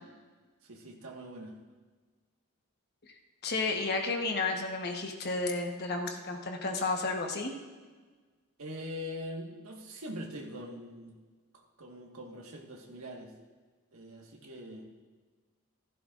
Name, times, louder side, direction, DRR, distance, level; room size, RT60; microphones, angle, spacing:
voice 1, 0.6-1.6 8.6-11.2 11.5-13.3 13.9-14.9, equal, 80° right, -1 dB, 1.6 m, -43 dB
voice 2, 3.4-7.5, left 3 dB, 50° left, 3 dB, 1.1 m, -32 dB
15.5 x 13.5 x 2.5 m, 1.4 s
head